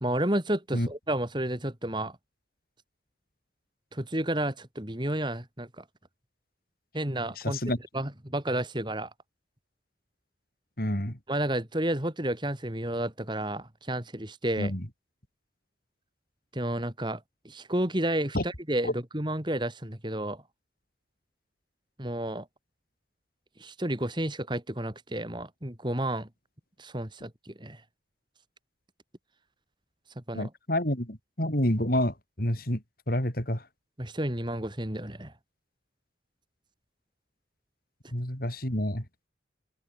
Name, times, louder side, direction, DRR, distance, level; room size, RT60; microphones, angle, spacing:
voice 1, 0.0-2.2 3.9-5.8 6.9-7.6 7.9-9.1 11.3-14.7 16.5-20.4 22.0-22.5 23.6-26.3 26.8-27.8 30.3-30.5 34.0-35.3, right 1 dB, 25° right, 2.6 m, -31 dB
voice 2, 7.4-7.8 10.8-11.2 14.6-14.8 18.3-18.4 18.8-18.9 30.3-32.8 33.1-33.6 38.1-39.0, left 1 dB, 50° left, 5.1 m, -28 dB
head